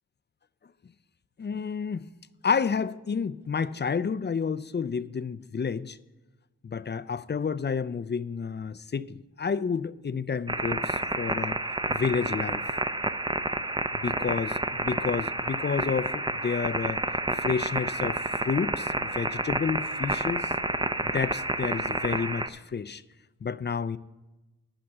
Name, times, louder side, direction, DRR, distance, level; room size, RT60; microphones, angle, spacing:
voice 1, 1.4-2.0 2.4-6.0 6.6-11.6 11.9-12.6 13.9-17.0 17.4-20.5 21.0-23.0 23.4-24.0, left 6 dB, 35° left, 0.5 m, -30 dB
sound 1, 10.5-22.5, right 2 dB, 15° right, 0.6 m, -30 dB
11.0 x 5.9 x 7.7 m
cardioid pair, 45°, 33 cm